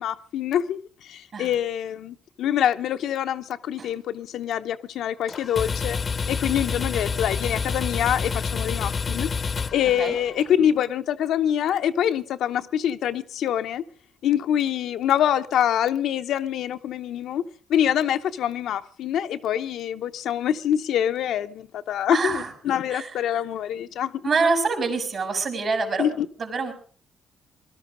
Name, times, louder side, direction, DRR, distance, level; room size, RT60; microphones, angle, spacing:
voice 1, 0.0-6.0 6.3-9.3 9.7-13.8 14.2-17.4 17.7-24.2 26.0-26.3, left 10 dB, 75° left, 0.7 m, -25 dB
sound 1, 5.3-10.5, left 5 dB, 40° left, 0.7 m, -28 dB
voice 2, 22.1-22.5 22.9-23.1 24.2-26.1 26.4-26.7, right 4 dB, 50° right, 4.4 m, -25 dB
20.0 x 12.5 x 5.0 m
cardioid pair, 90°, 0 cm